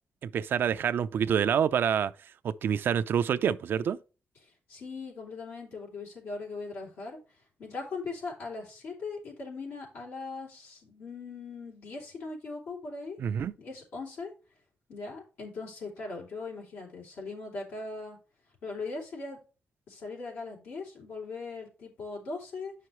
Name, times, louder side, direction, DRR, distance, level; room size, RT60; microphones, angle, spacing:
voice 1, 0.2-2.1 2.4-4.0 13.2-13.5, right 8 dB, 70° right, 0.4 m, -27 dB
voice 2, 4.4-7.2 7.6-13.2 13.6-14.3 14.9-18.2 18.6-19.4 19.9-22.7, left 3 dB, 85° left, 3.0 m, -40 dB
9.2 x 5.8 x 3.1 m
cardioid pair, 85°, 4 cm